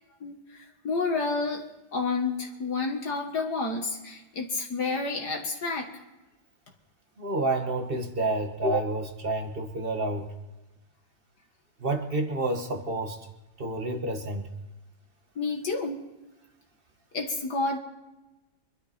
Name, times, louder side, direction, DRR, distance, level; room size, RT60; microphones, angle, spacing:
voice 1, 0.2-1.6 1.9-5.9 15.4-16.0 17.1-17.8, left 3 dB, 60° left, 2 dB, 2.1 m, -30 dB
voice 2, 7.2-10.3 11.8-13.2 13.6-14.5, right 2 dB, 30° right, 4 dB, 1.6 m, -29 dB
25.0 x 12.0 x 4.3 m, 1.0 s
omnidirectional pair, 2.1 m